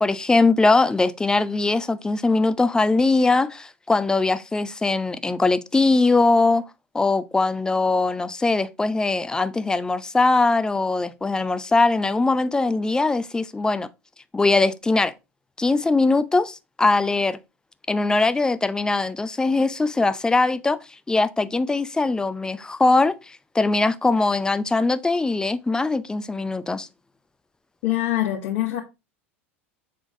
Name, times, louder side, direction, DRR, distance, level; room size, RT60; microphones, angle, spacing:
voice 1, 0.0-6.6 6.9-13.9 14.3-15.1 15.6-17.4 17.9-20.8 21.1-26.9, left 3 dB, 10° left, 0.6 m, -21 dB
voice 2, 27.8-28.8, left 14 dB, 60° left, 1.5 m, -24 dB
7.1 x 3.8 x 3.7 m
figure-of-eight pair, 80°, 7 cm